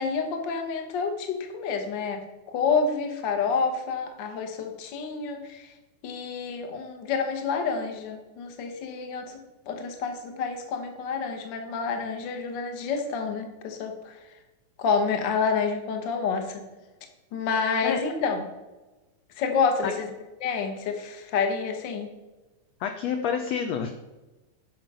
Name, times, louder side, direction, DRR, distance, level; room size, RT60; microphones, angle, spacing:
voice 1, 0.0-2.2 2.5-5.7 6.0-9.4 9.7-14.2 14.8-16.6 17.3-18.5 19.4-20.1 20.4-22.1, left 5 dB, 55° left, 5 dB, 1.3 m, -28 dB
voice 2, 22.8-23.9, left 7 dB, 75° left, 6 dB, 1.6 m, -28 dB
10.0 x 5.7 x 5.4 m, 1.1 s
omnidirectional pair, 3.6 m